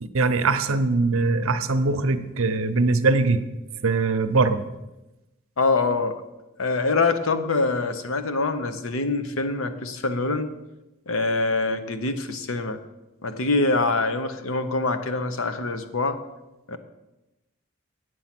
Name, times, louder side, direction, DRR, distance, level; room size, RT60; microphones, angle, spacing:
voice 1, 0.0-3.4 3.8-4.6, right 3 dB, 80° right, 10 dB, 0.7 m, -22 dB
voice 2, 5.6-6.2 6.6-10.5 11.1-12.8 13.2-16.2 16.7-16.8, left 3 dB, 85° left, 9 dB, 0.9 m, -24 dB
8.5 x 7.8 x 5.9 m, 1.0 s
head